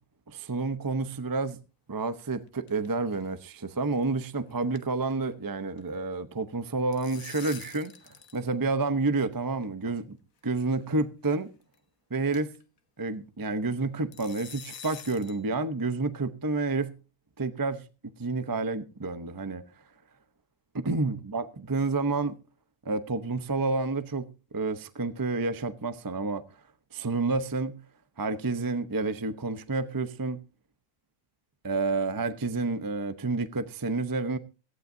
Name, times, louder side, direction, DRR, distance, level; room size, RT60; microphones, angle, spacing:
voice 1, 0.3-1.6 1.9-7.9 8.3-10.2 10.4-11.5 12.1-12.5 13.0-16.9 17.4-17.8 18.2-19.6 20.7-22.4 22.8-24.3 24.5-26.4 26.9-27.8 28.2-30.4 31.6-34.4, right 3 dB, 20° right, 0.6 m, -29 dB
sound 1, 2.1-2.9 3.1-3.3 3.6-3.7 4.0-4.3 4.5-5.8 6.6-8.4 8.7-8.8 9.6-9.7 10.6-10.8 11.2-11.3 11.7-11.8 12.3-12.6 14.1-15.4, left 7 dB, 65° left, 1.6 m, -46 dB
17.0 x 15.0 x 2.7 m
omnidirectional pair, 1.6 m